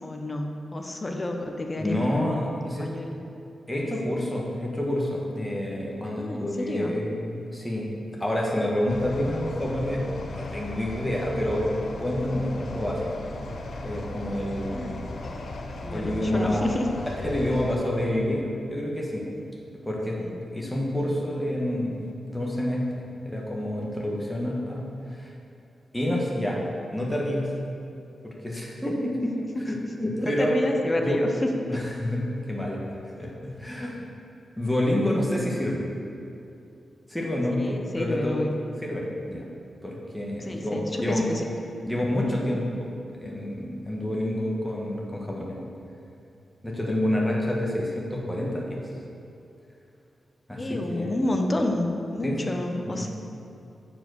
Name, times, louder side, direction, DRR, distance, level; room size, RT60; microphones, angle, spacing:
voice 1, 0.0-2.4 2.8-3.2 6.1-6.9 14.7-15.0 15.8-16.9 20.2-20.4 30.2-31.5 37.5-38.6 40.4-41.4 50.6-53.1, left 1 dB, 20° left, 3 dB, 0.7 m, -29 dB
voice 2, 1.8-2.9 3.7-7.9 8.2-11.6 12.0-13.1 13.8-14.8 15.9-16.7 17.2-19.3 19.8-24.8 25.1-25.3 25.9-26.6 26.9-27.5 28.2-29.4 29.7-30.5 31.0-31.2 31.7-32.2 32.5-32.8 33.2-33.9 34.6-35.9 37.1-38.4 38.8-39.4 39.8-41.3 41.9-42.9 43.2-45.6 46.6-48.8 50.5-51.1 52.2-52.5 52.8-53.0, left 1 dB, 5° left, -3 dB, 1.3 m, -28 dB
sound 1, 8.9-17.8, left 2 dB, 60° left, 0.8 m, -36 dB
7.4 x 7.2 x 6.2 m, 2.6 s
wide cardioid pair, 155°, 0 cm